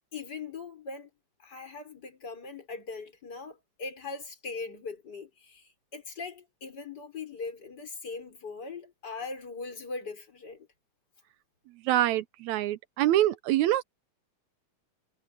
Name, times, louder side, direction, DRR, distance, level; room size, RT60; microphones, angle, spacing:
voice 1, 0.1-1.1 1.4-10.7, left 4 dB, 30° left, 5.6 m, -40 dB
voice 2, 11.8-13.8, right 13 dB, 80° right, 1.7 m, -25 dB
omnidirectional pair, 3.7 m